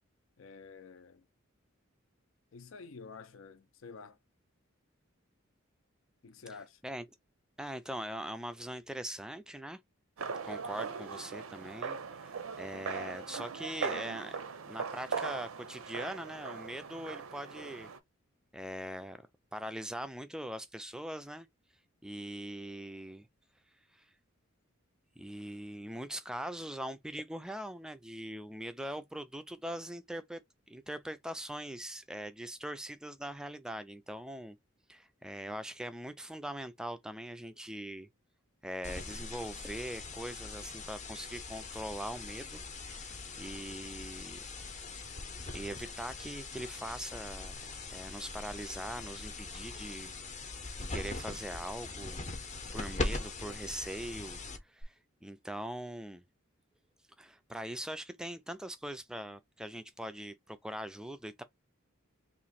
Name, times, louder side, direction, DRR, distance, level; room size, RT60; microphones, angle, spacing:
voice 1, 0.4-1.2 2.5-4.2 6.2-6.8, left 4 dB, 75° left, 0.5 m, -49 dB
voice 2, 7.6-9.8 10.4-14.4 14.7-17.9 18.5-19.2 19.5-21.5 22.0-23.3 23.9-24.1 25.2-30.4 30.7-34.6 34.9-38.1 38.6-42.6 42.9-44.8 45.5-47.6 47.9-50.4 50.8-52.3 52.7-56.2 57.2-61.4, right 1 dB, 5° right, 0.3 m, -42 dB
sound 1, 10.2-18.0, right 5 dB, 85° right, 0.5 m, -40 dB
sound 2, 38.8-54.8, left 3 dB, 35° left, 0.7 m, -41 dB
2.9 x 2.5 x 4.1 m
head